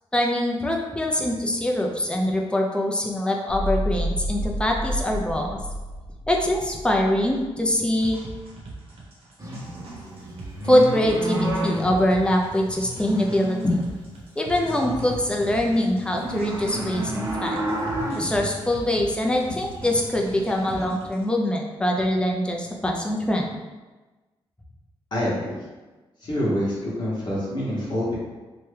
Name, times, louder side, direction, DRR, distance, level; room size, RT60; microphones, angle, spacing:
voice 1, 0.1-5.6 6.3-8.2 10.6-13.6 14.4-17.7 18.2-23.6, left 1 dB, 10° left, 0 dB, 0.5 m, -23 dB
sound 1, 3.5-7.7, equal, 70° left, 0.6 m, -30 dB
sound 2, 7.9-21.2, right 2 dB, 75° right, 0.9 m, -42 dB
Amb cow dogs cowboy gaucho ST, 9.4-14.1 14.4-20.9, right 1 dB, 30° right, 0.8 m, -32 dB
voice 2, 25.1-25.5 26.2-28.1, equal, 50° left, -8 dB, 1.0 m, -26 dB
3.0 x 2.2 x 3.2 m, 1.2 s
cardioid pair, 85°, 10 cm